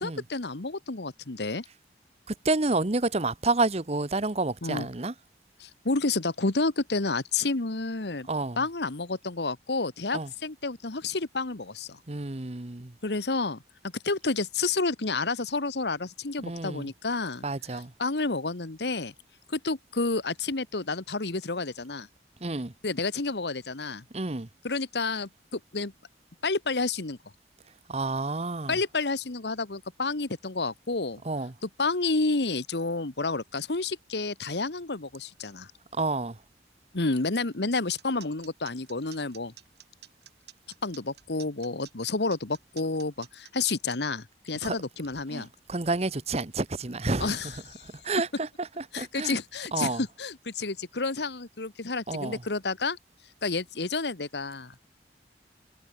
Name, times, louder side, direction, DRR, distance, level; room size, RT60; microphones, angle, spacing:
voice 1, 0.0-1.6 4.6-4.9 5.6-8.3 8.6-12.0 13.0-13.6 14.0-17.4 17.7-19.1 19.5-22.1 22.8-24.0 24.6-25.9 26.4-27.2 28.7-31.2 31.6-35.7 36.9-39.5 40.8-45.5 47.2-47.8 48.9-53.0 53.4-54.7, left 3 dB, 75° left, 1.4 m, -30 dB
voice 2, 2.3-5.1 8.3-8.6 10.1-10.3 12.1-12.9 16.4-16.9 17.4-17.9 22.4-22.7 24.1-24.5 27.9-28.8 31.2-31.5 36.0-36.3 44.6-44.7 45.3-47.4 47.8-49.4 49.7-50.0 52.1-52.4, right 3 dB, 35° right, 1.0 m, -29 dB
sound 1, 37.7-44.0, right 13 dB, 70° right, 7.5 m, -50 dB
head